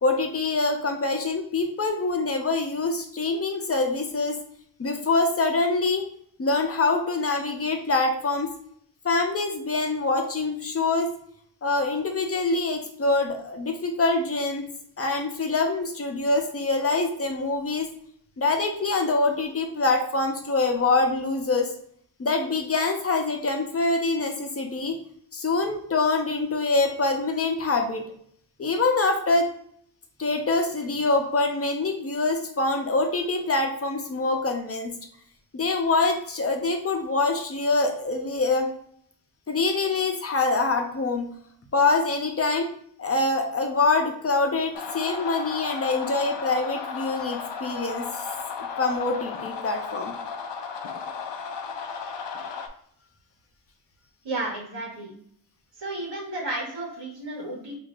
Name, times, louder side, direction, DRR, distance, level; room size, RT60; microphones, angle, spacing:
voice 1, 0.0-4.4 4.8-6.1 6.4-8.5 9.0-11.1 11.6-14.7 15.0-17.9 18.4-21.7 22.2-25.0 25.3-28.0 28.6-29.5 30.2-34.9 35.5-38.7 39.5-41.3 41.7-42.7 43.0-48.2 48.8-50.1, left 3 dB, 35° left, 4 dB, 0.8 m, -25 dB
sound 1, 44.7-52.7, left 5 dB, 80° left, 0.6 m, -34 dB
voice 2, 54.2-55.1 55.8-57.8, right 2 dB, 80° right, -5 dB, 1.4 m, -32 dB
4.9 x 2.7 x 2.5 m, 0.65 s
wide cardioid pair, 95°, 43 cm